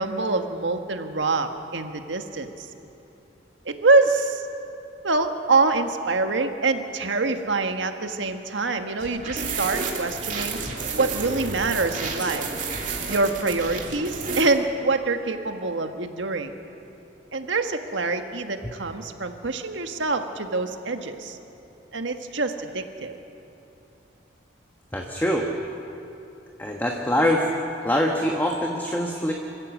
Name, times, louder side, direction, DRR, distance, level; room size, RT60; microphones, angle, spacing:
voice 1, 0.0-2.7 3.6-4.4 5.0-10.6 11.0-12.5 13.1-16.5 17.3-21.4 21.9-23.2, right 3 dB, 80° right, 6 dB, 1.5 m, -25 dB
sound 1, 9.0-14.4, right 4 dB, 45° right, 2.7 m, -31 dB
voice 2, 24.9-25.5 26.6-27.5 27.8-29.3, equal, 10° left, 0 dB, 1.4 m, -23 dB
26.0 x 15.0 x 8.3 m, 3.0 s
head